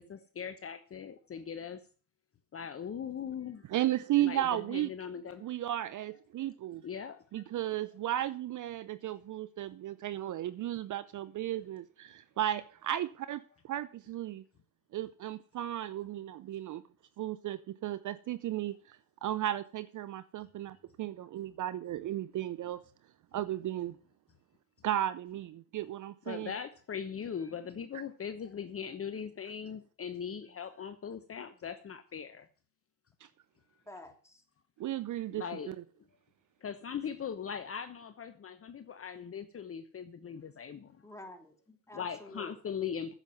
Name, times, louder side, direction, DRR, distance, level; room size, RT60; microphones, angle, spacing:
voice 1, 0.0-1.8 2.5-3.7 4.2-5.5 6.8-7.4 26.3-32.5 35.3-35.7 36.6-41.1 41.9-43.1, left 7 dB, 30° left, 1.1 m, -40 dB
voice 2, 3.7-4.9 5.4-6.8 7.3-14.4 14.9-16.8 17.2-22.8 23.3-24.0 24.8-26.5 34.8-35.7, right 13 dB, 40° right, 0.7 m, -35 dB
voice 3, 33.9-34.4 41.0-42.5, left 1 dB, 5° left, 3.0 m, -50 dB
9.9 x 7.6 x 7.6 m
supercardioid pair, 85°, 46 cm